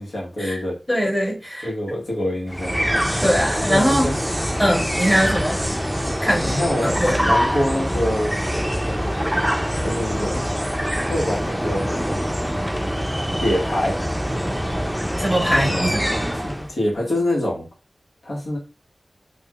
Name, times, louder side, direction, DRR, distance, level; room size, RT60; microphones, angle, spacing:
voice 1, 0.0-0.8 1.6-2.8 3.7-4.2 6.4-8.4 9.8-10.4 11.1-12.3 13.4-14.0 15.5-15.9 16.4-17.7 18.2-18.6, left 1 dB, 90° left, 1.3 m, -25 dB
voice 2, 0.9-1.7 3.2-4.1 4.6-5.6 6.2-7.3 7.5-7.6 15.2-16.0, equal, 20° left, 1.9 m, -21 dB
sound 1, 2.5-16.7, equal, ahead, 0.5 m, -24 dB
4.6 x 2.5 x 2.3 m
wide cardioid pair, 50°, 0 cm